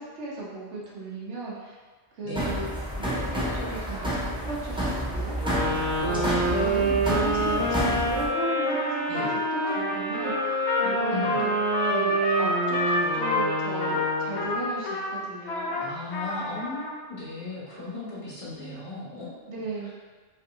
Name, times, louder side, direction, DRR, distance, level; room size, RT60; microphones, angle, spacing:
voice 1, 0.0-1.8 2.2-2.7 3.0-5.7 6.1-6.2 6.5-15.8 19.5-19.9, right 3 dB, 90° right, -5 dB, 1.2 m, -37 dB
voice 2, 2.2-2.6 6.0-7.4 9.1-9.3 11.1-11.4 15.5-19.4, left 2 dB, 30° left, -8 dB, 1.4 m, -36 dB
sound 1, 2.3-8.3, equal, 5° right, 0.7 m, -29 dB
sound 2, 5.4-14.6, right 1 dB, 50° right, 0.9 m, -27 dB
Trumpet, 8.7-16.9, left 2 dB, 75° left, 1.0 m, -29 dB
5.2 x 3.2 x 2.7 m, 1.4 s
omnidirectional pair, 1.1 m